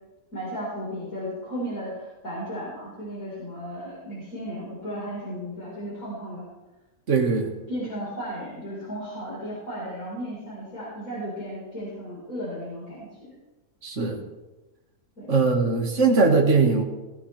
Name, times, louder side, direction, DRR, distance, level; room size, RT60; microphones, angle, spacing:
voice 1, 0.3-6.5 7.7-13.3 15.2-15.3, equal, 85° left, -7 dB, 4.9 m, -35 dB
voice 2, 7.1-7.5 13.8-14.2 15.3-16.8, right 4 dB, 60° right, 0 dB, 2.1 m, -20 dB
18.5 x 15.5 x 3.4 m, 1.1 s
omnidirectional pair, 1.5 m